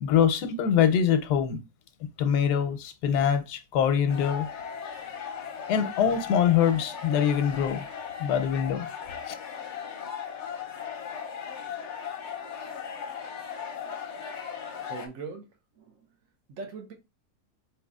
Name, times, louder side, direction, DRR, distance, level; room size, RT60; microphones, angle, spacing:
voice 1, 0.0-1.6 2.2-4.5 5.7-7.9 8.2-8.9 9.3-9.4, left 8 dB, 90° left, 1.2 m, -24 dB
sound 1, 4.1-15.1, left 7 dB, 60° left, 0.8 m, -37 dB
voice 2, 14.8-15.5 15.8-16.1 16.6-16.9, right 4 dB, 60° right, 1.1 m, -40 dB
4.1 x 3.2 x 2.3 m
omnidirectional pair, 1.7 m